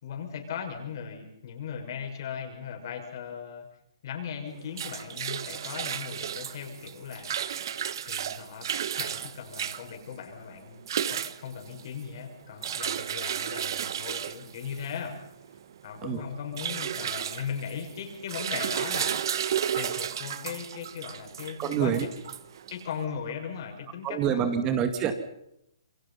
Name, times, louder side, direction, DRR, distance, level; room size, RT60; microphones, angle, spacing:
voice 1, 0.0-3.7 4.0-7.4 8.0-8.7 9.0-15.2 15.8-19.2 19.7-22.2 22.7-24.8, left 7 dB, 50° left, 4 dB, 6.2 m, -38 dB
sound 1, 4.5-23.0, right 9 dB, 55° right, 1.4 m, -34 dB
voice 2, 21.6-22.1 24.0-25.1, right 8 dB, 25° right, 9 dB, 2.1 m, -26 dB
27.5 x 23.0 x 5.7 m, 0.79 s
hypercardioid pair, 140°, 3 cm